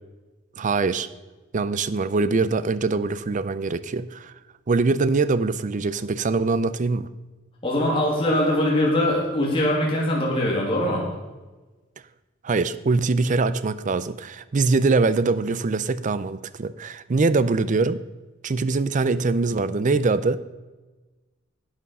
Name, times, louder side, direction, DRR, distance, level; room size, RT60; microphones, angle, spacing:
voice 1, 0.6-1.1 1.5-4.3 4.7-7.1 12.4-18.0 18.4-20.5, right 3 dB, 40° right, 15 dB, 0.5 m, -23 dB
voice 2, 7.6-11.0, left 1 dB, 25° left, -4 dB, 2.4 m, -22 dB
11.0 x 8.9 x 5.4 m, 1.2 s
head